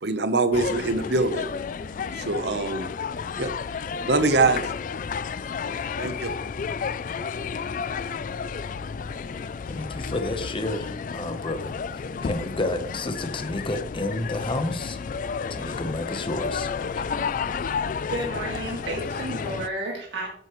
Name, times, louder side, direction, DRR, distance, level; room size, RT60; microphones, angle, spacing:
voice 1, 0.0-1.5 2.1-2.9 3.4-3.5 4.0-4.7 6.0-6.3, right 3 dB, 65° right, 0.9 m, -23 dB
sound 1, 0.5-19.7, left 5 dB, 45° left, 0.3 m, -32 dB
voice 2, 9.7-11.8 12.2-15.0 15.5-17.0, left 2 dB, 30° left, 0.9 m, -30 dB
voice 3, 18.1-20.3, right 2 dB, 85° right, 2.1 m, -31 dB
9.3 x 8.3 x 3.1 m
head